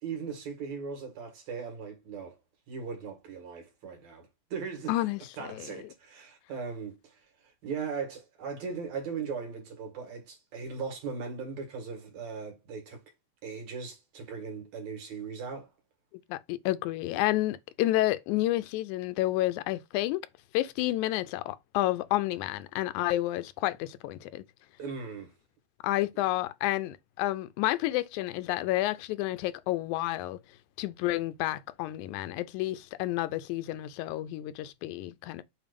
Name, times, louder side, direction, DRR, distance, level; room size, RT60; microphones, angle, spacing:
voice 1, 0.0-2.3 2.7-5.0 5.4-7.2 7.6-13.0 13.4-15.7 24.8-25.3, right 5 dB, 70° right, 3.2 m, -38 dB
voice 2, 4.9-5.7 16.3-20.2 20.5-24.4 25.8-30.4 30.8-35.4, left 16 dB, 90° left, 2.0 m, -30 dB
7.2 x 2.6 x 5.1 m
omnidirectional pair, 3.4 m